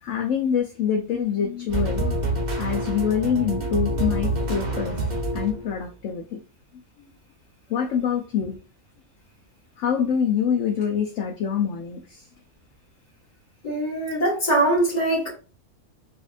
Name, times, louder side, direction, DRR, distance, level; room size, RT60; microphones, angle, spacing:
voice 1, 0.0-2.3 2.6-4.9 5.3-6.4 7.0-7.1 7.7-8.6 9.8-12.2, left 8 dB, 65° left, 0.9 m, -25 dB
sound 1, 1.7-5.9, right 2 dB, 40° right, 0.7 m, -27 dB
voice 2, 13.6-15.3, right 1 dB, 30° left, 1.5 m, -22 dB
4.1 x 2.4 x 2.4 m
omnidirectional pair, 1.5 m